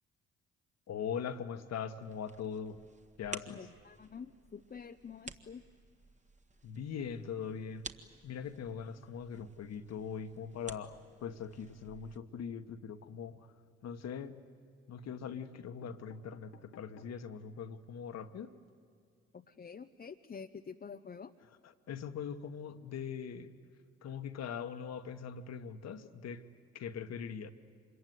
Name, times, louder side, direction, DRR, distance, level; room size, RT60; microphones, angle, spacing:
voice 1, 0.9-2.8 3.2-3.7 6.6-7.9 8.2-13.5 13.8-14.4 14.9-18.5 21.9-23.5 24.0-26.4 26.7-27.5, left 7 dB, 55° left, 9 dB, 1.4 m, -41 dB
sound 1, 2.0-12.2, right 3 dB, 25° right, 1.6 m, -52 dB
voice 2, 3.5-5.6 19.3-21.3, left 6 dB, 30° left, 5 dB, 0.8 m, -48 dB
sound 2, 13.8-14.4 15.2-15.3 15.5-17.3 17.8-17.9 18.1-18.2 18.5-18.7, left 6 dB, 85° left, 1.3 m, -61 dB
26.0 x 22.5 x 9.5 m, 2.2 s
hypercardioid pair, 50°, 30 cm